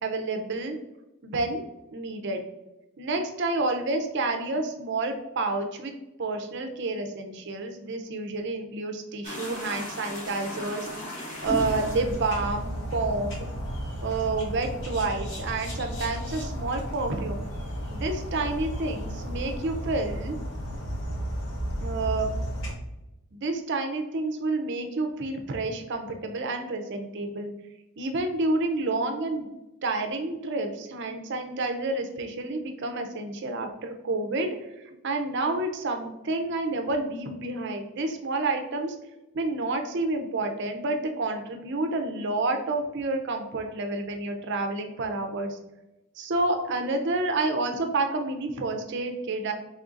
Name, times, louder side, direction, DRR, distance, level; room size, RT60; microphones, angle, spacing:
voice 1, 0.0-0.8 1.2-1.6 1.9-2.4 3.0-5.9 6.2-10.9 11.4-13.5 14.0-17.4 17.9-20.4 21.8-22.3 23.3-27.5 28.0-29.5 29.8-34.5 35.0-38.9 39.3-45.6 46.2-49.5, right 2 dB, 50° right, 5 dB, 0.5 m, -29 dB
sound 1, 9.2-17.8 18.0-19.4, left 1 dB, 35° left, 0.9 m, -39 dB
sound 2, 11.4-22.7, equal, 55° left, 1.0 m, -33 dB
3.9 x 3.5 x 2.4 m, 0.97 s
head